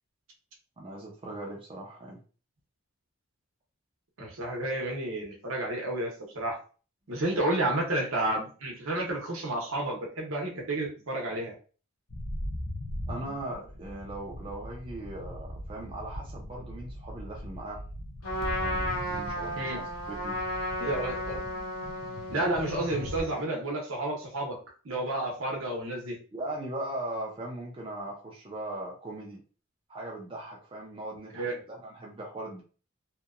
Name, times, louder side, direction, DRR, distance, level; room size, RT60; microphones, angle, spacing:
voice 1, 0.8-2.2 13.1-17.8 18.4-19.8 20.1-20.4 26.3-29.4 29.9-32.6, right 1 dB, 25° right, -1 dB, 0.5 m, -39 dB
voice 2, 4.2-6.6 7.1-11.5 19.6-19.8 20.8-21.4 22.3-24.6 24.8-26.2 31.3-31.6, right 1 dB, 75° right, 0 dB, 0.8 m, -31 dB
sound 1, 12.1-23.2, left 1 dB, 60° left, 0.6 m, -40 dB
Trumpet, 18.2-23.5, left 1 dB, 80° left, 1.2 m, -34 dB
2.8 x 2.2 x 2.4 m, 0.38 s
head